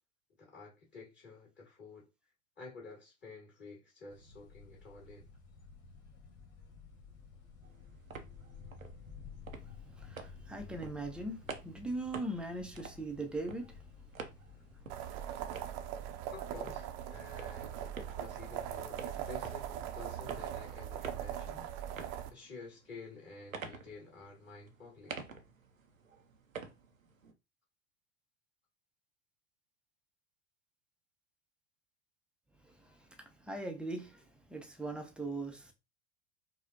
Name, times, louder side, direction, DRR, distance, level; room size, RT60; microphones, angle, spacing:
voice 1, 0.4-2.1 2.6-5.3 14.7-14.9 16.3-21.7 22.0-25.2, left 4 dB, 25° left, 2.2 m, -51 dB
sound 1, 4.1-14.8, left 5 dB, 60° left, 1.3 m, -53 dB
sound 2, 7.6-27.3, right 4 dB, 85° right, 0.6 m, -50 dB
voice 2, 10.0-13.8 32.6-35.7, right 2 dB, ahead, 0.6 m, -40 dB
sound 3, 14.9-22.3, right 10 dB, 45° right, 0.7 m, -40 dB
4.8 x 2.1 x 2.8 m
figure-of-eight pair, 80°, 40 cm